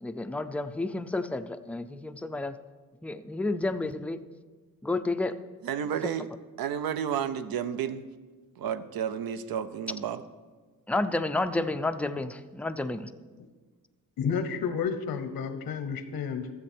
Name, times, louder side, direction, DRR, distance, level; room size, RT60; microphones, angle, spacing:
voice 1, 0.0-2.5 3.0-4.2 4.8-5.3 6.0-6.1 10.9-13.1, left 2 dB, 5° left, 9 dB, 0.3 m, -30 dB
voice 2, 5.6-6.3 6.6-8.0 8.6-10.2, right 8 dB, 80° right, 12 dB, 0.6 m, -31 dB
voice 3, 14.2-16.5, left 6 dB, 90° left, 10 dB, 0.9 m, -31 dB
13.0 x 7.6 x 4.4 m, 1.4 s
cardioid pair, 115°, 35 cm